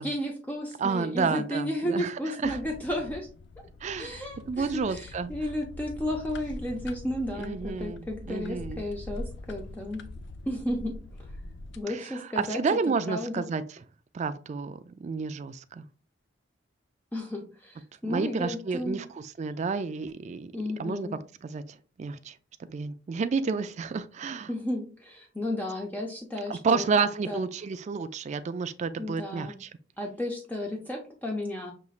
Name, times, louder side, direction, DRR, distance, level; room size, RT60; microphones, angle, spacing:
voice 1, 0.0-3.3 4.0-10.0 10.5-10.9 11.8-12.6 13.1-13.4 17.1-19.0 20.5-21.2 24.5-26.9 27.3-27.4 29.0-29.6 30.0-31.7, left 1 dB, 10° left, 0.5 m, -33 dB
voice 2, 0.8-2.6 3.8-5.3 7.4-8.8 11.9-13.8 14.1-15.8 18.1-20.5 20.8-21.1 21.4-22.3 22.7-24.5 26.5-29.7, right 5 dB, 40° right, 0.3 m, -30 dB
sound 1, 2.4-11.8, left 1 dB, 70° left, 0.4 m, -43 dB
5.5 x 3.0 x 2.4 m
head